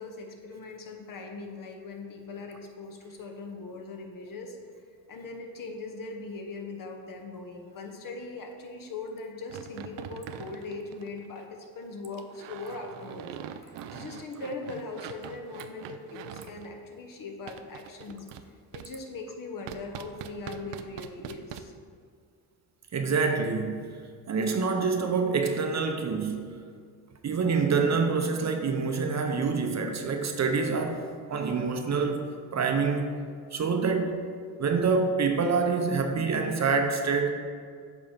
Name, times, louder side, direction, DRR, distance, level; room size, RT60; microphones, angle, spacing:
voice 1, 0.0-4.6 5.1-18.3 18.7-21.7, left 3 dB, 50° left, 3 dB, 1.1 m, -40 dB
sound 1, 9.5-11.4 12.1-16.7 17.5-18.5 18.7-18.9 19.7-21.6, right 10 dB, 80° right, 0.5 m, -43 dB
voice 2, 22.9-23.8 24.3-26.4 27.2-31.0 31.3-32.3 32.5-33.1 33.5-34.2 34.6-37.3, right 4 dB, 40° right, 5 dB, 0.8 m, -26 dB
7.5 x 3.6 x 4.4 m, 2.1 s
supercardioid pair, 65°, 43 cm